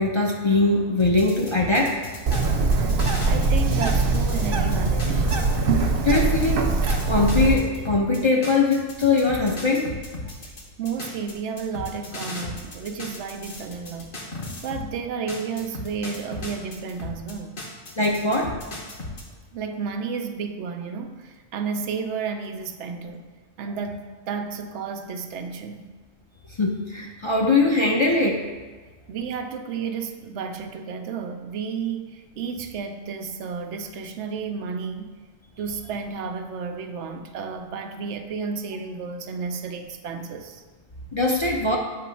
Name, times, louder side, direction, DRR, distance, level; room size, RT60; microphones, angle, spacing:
voice 1, 0.0-2.0 6.0-6.6 7.1-9.9 18.0-18.5 26.6-28.4 41.1-41.8, left 3 dB, 35° left, -1 dB, 0.5 m, -21 dB
sound 1, 1.0-5.8 6.1-14.9 15.3-19.2, left 2 dB, 50° left, 1.2 m, -36 dB
Bird, 2.3-7.5, right 3 dB, 60° right, 0.8 m, -22 dB
voice 2, 3.3-5.3 10.4-14.1 14.6-17.6 19.5-23.2 23.6-25.9 29.1-35.2 35.6-40.6, right 5 dB, 85° right, 6 dB, 0.9 m, -32 dB
7.6 x 3.0 x 5.6 m, 1.3 s
omnidirectional pair, 1.2 m